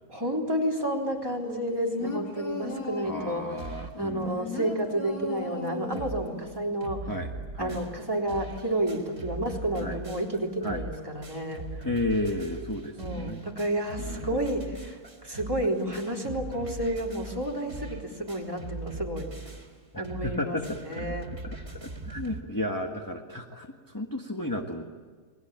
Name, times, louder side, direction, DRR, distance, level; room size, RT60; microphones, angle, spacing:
voice 1, 0.1-7.1 7.6-11.8 13.0-19.3 20.0-20.6 20.8-21.3, right 1 dB, 15° right, -1 dB, 3.6 m, -31 dB
sound 1, 1.4-3.4 3.9-6.4 6.7-6.8, left 3 dB, 70° left, 3.9 m, -36 dB
voice 2, 3.0-4.3 7.1-7.8 9.8-10.0 10.6-10.9 11.8-13.4 14.0-14.4 19.9-21.1 21.4-21.6 21.8-24.8, left 1 dB, 15° left, 2 dB, 1.6 m, -33 dB
sound 2, 3.6-4.0 4.5-4.6 4.8-4.9 5.4-5.5 5.7-6.3 6.5-22.4, right 2 dB, 40° right, 3.8 m, -40 dB
29.5 x 21.5 x 9.0 m, 1.5 s
omnidirectional pair, 1.6 m